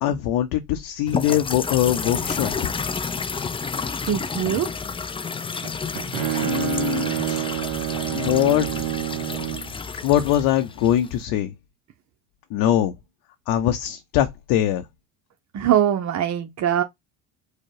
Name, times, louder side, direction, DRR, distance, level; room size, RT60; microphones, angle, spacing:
voice 1, 0.0-2.5 6.4-7.4 8.1-8.7 10.0-11.5 12.5-12.9 13.5-14.8, left 12 dB, 75° left, 0.8 m, -22 dB
sound 1, 1.1-11.2, left 5 dB, 15° left, 0.4 m, -30 dB
voice 2, 4.0-4.7 15.5-16.8, right 10 dB, 50° right, 0.8 m, -22 dB
Bowed string instrument, 5.6-9.8, right 18 dB, 90° right, 0.5 m, -28 dB
4.8 x 2.3 x 4.6 m
supercardioid pair, 85°, 36 cm